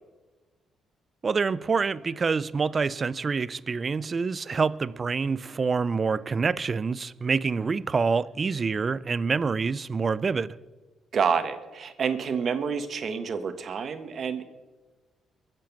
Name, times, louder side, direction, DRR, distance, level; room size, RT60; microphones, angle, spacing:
voice 1, 1.2-10.5, right 5 dB, 35° right, 0.5 m, -26 dB
voice 2, 11.1-14.4, right 6 dB, 55° right, 1.4 m, -28 dB
22.5 x 7.6 x 6.0 m
cardioid pair, 90°, 0 cm